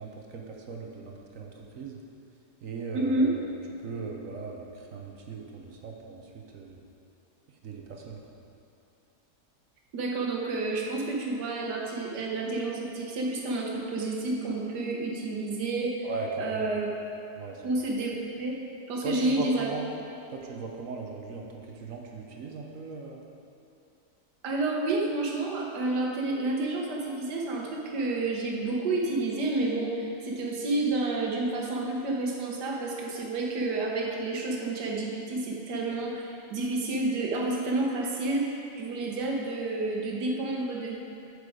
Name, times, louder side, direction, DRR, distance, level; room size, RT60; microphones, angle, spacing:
voice 1, 0.0-2.0 2.6-3.5 3.8-6.8 7.5-8.2 16.0-16.7 17.4-17.6 19.0-19.9 20.3-23.2, right 4 dB, 60° right, 0 dB, 1.2 m, -38 dB
voice 2, 2.9-3.3 9.9-16.1 16.4-16.9 17.6-18.5 18.9-19.7 24.4-41.0, right 2 dB, 85° right, -1 dB, 1.7 m, -30 dB
8.4 x 6.7 x 4.9 m, 2.6 s
omnidirectional pair, 1.7 m